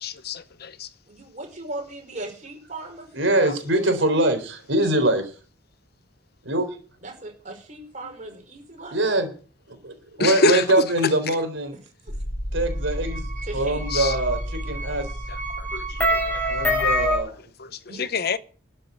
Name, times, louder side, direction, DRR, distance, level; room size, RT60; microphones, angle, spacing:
voice 1, 0.0-0.9 10.2-10.6 13.9-14.1 15.6-15.8 16.1-16.4 16.8-16.9 17.6-18.4, left 4 dB, 55° left, 0.8 m, -26 dB
voice 2, 1.1-3.1 7.0-9.0 13.4-13.8 17.9-18.1, right 2 dB, 40° right, 5.4 m, -37 dB
voice 3, 3.1-5.3 6.4-6.7 8.9-9.3 9.7-11.7 12.5-13.3 13.5-15.1 16.5-17.3, right 1 dB, 75° right, 3.8 m, -23 dB
sound 1, 12.1-17.2, equal, 10° left, 6.9 m, -26 dB
13.0 x 7.6 x 8.2 m
head